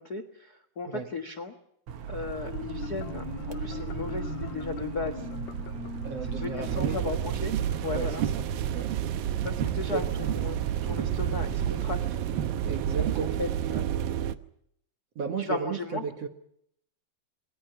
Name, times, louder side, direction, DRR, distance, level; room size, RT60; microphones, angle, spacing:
voice 1, 0.0-1.5 2.1-5.3 6.3-7.5 7.8-8.2 9.4-12.2 13.0-13.1 13.4-13.9 15.4-16.0, left 3 dB, 60° left, 10 dB, 1.0 m, -36 dB
sound 1, 1.9-13.2, right 8 dB, 90° right, 1.3 m, -36 dB
Marimba xylophone, 2.3-7.9, left 7 dB, 80° left, 3.2 m, -40 dB
voice 2, 6.0-7.1 7.9-8.5 8.7-8.9 9.9-10.1 12.7-13.4 15.2-16.3, right 5 dB, 55° right, 5 dB, 2.0 m, -34 dB
sound 2, 6.6-14.3, right 11 dB, 75° right, 2.6 m, -30 dB
27.5 x 21.5 x 5.8 m, 0.72 s
omnidirectional pair, 4.4 m